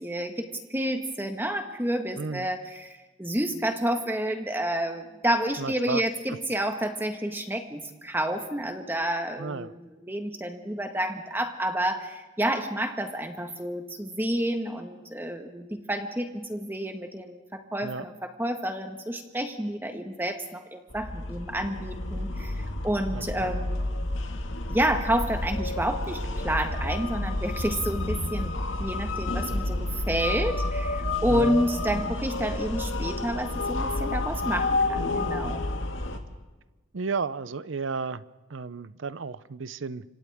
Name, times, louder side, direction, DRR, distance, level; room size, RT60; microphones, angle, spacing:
voice 1, 0.0-23.9 24.7-28.5 28.8-35.6, right 1 dB, 10° right, 5 dB, 1.6 m, -29 dB
voice 2, 2.2-2.5 5.6-6.0 6.3-6.4 9.4-9.7 17.8-18.0 23.1-23.5 31.3-31.6 36.9-38.2 38.5-40.0, right 4 dB, 85° right, 16 dB, 0.7 m, -33 dB
sound 1, 20.9-36.2, left 2 dB, 90° left, 2.0 m, -30 dB
29.5 x 26.0 x 3.6 m, 1.2 s
head